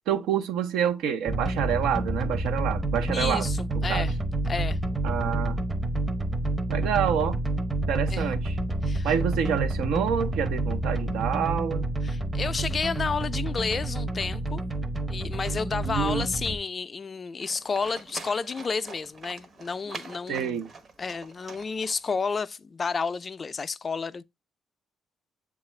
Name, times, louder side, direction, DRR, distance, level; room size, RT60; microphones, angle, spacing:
voice 1, 0.1-3.5 3.9-4.1 5.0-5.6 6.7-7.4 7.9-8.5 9.0-11.9 15.8-16.3 20.3-20.7, right 8 dB, 90° right, 0.6 m, -27 dB
sound 1, 1.3-16.6, right 2 dB, 20° right, 0.7 m, -29 dB
voice 2, 3.1-4.2 4.5-4.8 8.1-8.3 8.8-9.1 12.0-14.6 15.1-20.6 21.0-24.2, left 5 dB, 35° left, 0.3 m, -31 dB
Livestock farm animals working animals, 17.4-22.4, right 3 dB, 45° right, 0.9 m, -44 dB
7.1 x 2.4 x 3.1 m
cardioid pair, 90°, 0 cm